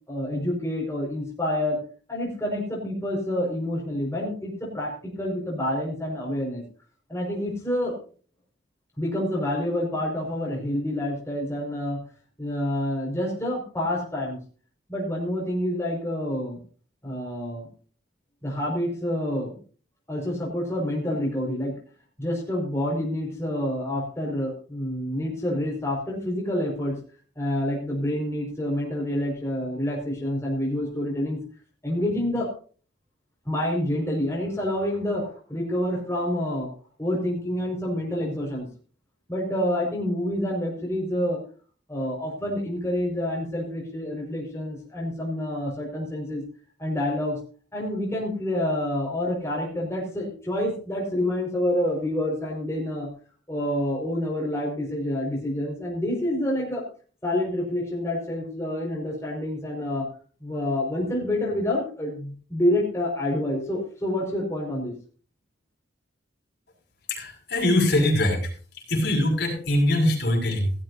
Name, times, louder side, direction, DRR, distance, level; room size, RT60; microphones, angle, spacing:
voice 1, 0.1-1.8 2.1-6.6 7.1-8.0 9.0-12.0 12.4-14.4 14.9-16.6 17.0-17.7 18.4-19.6 20.1-21.7 22.2-27.0 27.4-31.4 31.8-32.5 33.4-36.7 37.0-38.7 39.3-41.4 41.9-46.4 46.8-47.4 47.7-53.1 53.5-56.8 57.2-60.1 60.4-64.9, left 1 dB, 15° left, -3 dB, 5.3 m, -28 dB
voice 2, 67.1-68.5 68.9-70.7, left 1 dB, 60° left, 0 dB, 6.3 m, -22 dB
17.5 x 14.5 x 2.7 m, 0.40 s
head